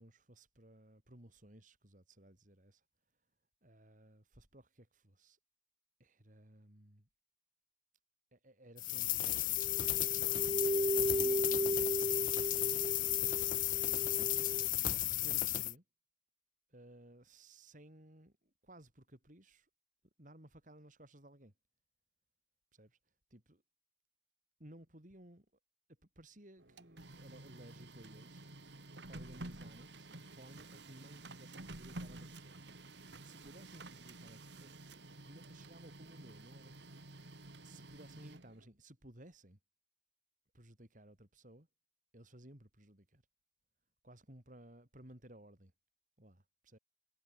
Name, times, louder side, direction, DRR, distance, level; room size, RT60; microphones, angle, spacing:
voice 1, 0.0-2.8 3.6-5.4 6.0-7.1 8.3-9.6 10.1-14.2 15.2-15.8 16.7-19.7 20.2-21.5 22.7-23.0 23.3-23.6 24.6-25.5 26.2-28.4 29.1-32.6 33.2-35.0 35.2-36.7 37.6-39.6 40.5-41.7 42.1-43.2 44.0-45.7 46.2-46.8, right 1 dB, 45° right, 4.4 m, -58 dB
sound 1, 8.8-15.7, left 15 dB, 50° left, 0.5 m, -34 dB
sound 2, 9.6-14.7, right 1 dB, 25° right, 1.1 m, -36 dB
Printer, 26.6-38.7, right 2 dB, 80° right, 3.2 m, -51 dB
head